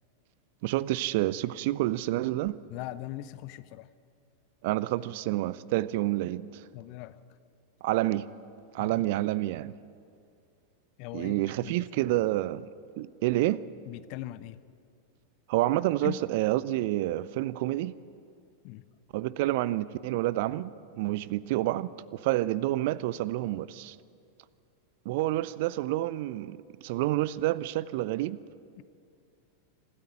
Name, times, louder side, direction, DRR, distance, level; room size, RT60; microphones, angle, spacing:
voice 1, 0.6-2.5 4.6-6.6 7.8-8.3 8.7-9.7 11.1-12.7 13.0-13.6 15.5-17.9 19.1-24.0 25.1-28.4, right 16 dB, 50° right, 0.5 m, -28 dB
voice 2, 2.7-3.9 6.7-7.2 8.8-9.0 11.0-12.1 13.8-14.6 16.0-16.2 18.6-18.8 28.8-28.9, left 16 dB, 45° left, 0.7 m, -40 dB
26.0 x 13.0 x 9.9 m
figure-of-eight pair, 90°, 0 cm